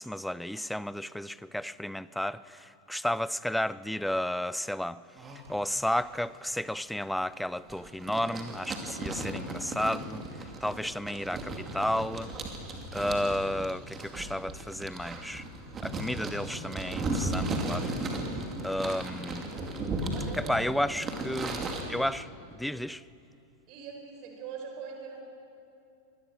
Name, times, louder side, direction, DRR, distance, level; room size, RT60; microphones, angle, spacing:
voice 1, 0.0-5.0 5.5-10.2 10.6-12.3 12.9-15.4 15.8-17.9 18.6-19.5 20.4-21.6 21.9-22.3 22.6-23.0, left 1 dB, ahead, 0.4 m, -32 dB
sound 1, 5.2-5.5 5.9-6.2 6.6-6.7 7.7-21.8, right 2 dB, 20° right, 2.8 m, -36 dB
voice 2, 20.1-21.1 21.8-22.0 23.7-25.2, right 6 dB, 40° right, 4.5 m, -42 dB
24.0 x 19.0 x 6.4 m
figure-of-eight pair, 90°, 0 cm